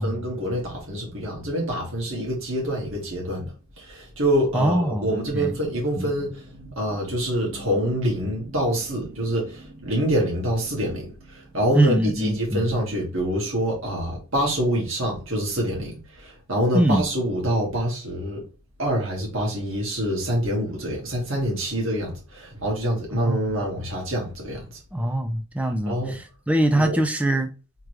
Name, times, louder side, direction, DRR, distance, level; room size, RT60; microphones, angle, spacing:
voice 1, 0.0-18.4 18.8-24.6 25.6-26.2 26.7-27.0, equal, 60° right, 1.8 m, -26 dB
voice 2, 4.5-5.5 6.0-6.1 11.7-12.7 16.7-17.0 23.1-23.4 24.9-26.2 26.5-27.5, right 1 dB, 5° right, 0.4 m, -22 dB
3.7 x 3.0 x 3.1 m
head